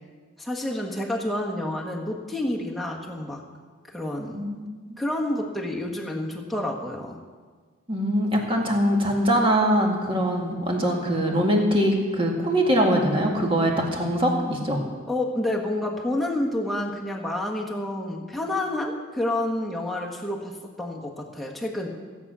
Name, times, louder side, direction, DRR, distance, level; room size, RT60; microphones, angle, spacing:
voice 1, 0.4-3.4 3.9-4.5 5.0-7.2 15.1-21.9, left 1 dB, ahead, -2 dB, 1.4 m, -29 dB
voice 2, 4.3-5.0 7.9-14.8, equal, 25° right, 0 dB, 1.9 m, -23 dB
16.0 x 8.3 x 6.2 m, 1.5 s
head